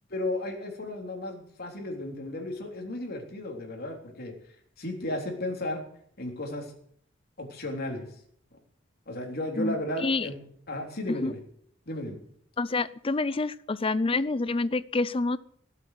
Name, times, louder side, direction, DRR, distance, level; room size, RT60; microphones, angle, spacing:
voice 1, 0.1-4.3 4.8-5.8 6.2-6.7 7.4-8.1 9.1-10.4 10.7-11.4 11.9-12.2, left 1 dB, 50° left, 2 dB, 3.6 m, -34 dB
voice 2, 12.6-15.4, left 3 dB, 30° left, 17 dB, 0.5 m, -27 dB
17.5 x 8.2 x 7.9 m, 0.64 s
head